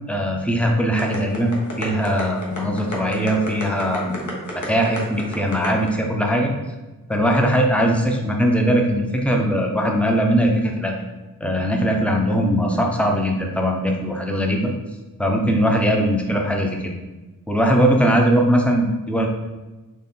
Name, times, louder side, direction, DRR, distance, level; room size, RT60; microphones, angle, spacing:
voice 1, 0.1-6.5 7.1-10.9 11.4-14.7 15.2-16.9 17.5-19.3, equal, 5° left, 1 dB, 0.7 m, -20 dB
sound 1, 1.0-5.9, left 2 dB, 60° left, 1.1 m, -31 dB
4.3 x 3.1 x 3.7 m, 1.2 s
wide cardioid pair, 70°, 35 cm